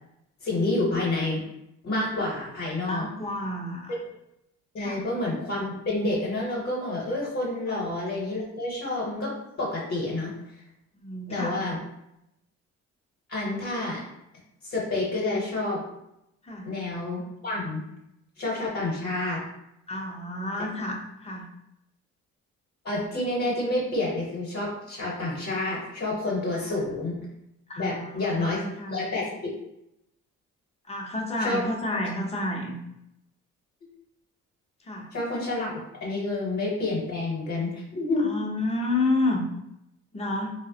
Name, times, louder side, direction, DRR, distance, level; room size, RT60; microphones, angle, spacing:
voice 1, 0.4-1.4 1.8-3.1 3.9-4.0 4.7-10.3 11.3-11.8 13.3-14.0 14.6-15.8 16.6-17.8 18.4-19.4 22.8-27.2 27.8-28.6 28.9-29.5 31.4-31.6 31.9-32.0 35.1-38.3, left 2 dB, 45° left, -4 dB, 0.9 m, -29 dB
voice 2, 2.9-3.9 4.8-5.0 7.7-7.8 11.0-11.6 16.4-16.7 19.9-21.5 27.7-28.1 28.4-29.0 30.9-32.8 34.9-35.1 38.2-39.4 40.1-40.5, left 2 dB, 20° left, -1 dB, 0.6 m, -30 dB
3.1 x 2.0 x 2.7 m, 0.85 s
cardioid pair, 90°, 30 cm